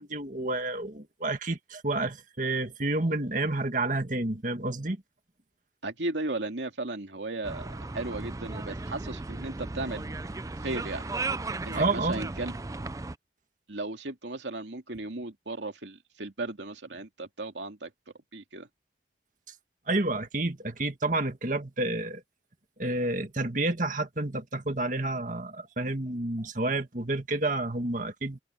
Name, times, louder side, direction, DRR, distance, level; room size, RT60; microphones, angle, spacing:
voice 1, 0.0-5.0 11.7-12.2 19.9-22.2 22.8-28.4, right 2 dB, 45° right, 1.9 m, -29 dB
voice 2, 5.8-7.7 7.9-10.0 10.6-11.1 11.7-12.6 13.7-17.9 18.3-18.7, right 2 dB, 85° right, 2.6 m, -35 dB
sound 1, 7.4-13.2, right 3 dB, 20° right, 0.4 m, -36 dB
head